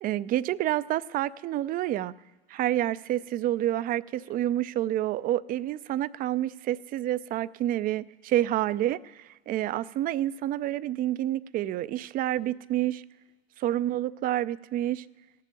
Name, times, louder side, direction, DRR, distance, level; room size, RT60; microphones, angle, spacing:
voice 1, 0.0-2.1 2.5-13.0 13.6-15.0, right 13 dB, 30° right, 17 dB, 0.4 m, -28 dB
16.0 x 7.6 x 9.1 m, 1.3 s
hypercardioid pair, 85°, 31 cm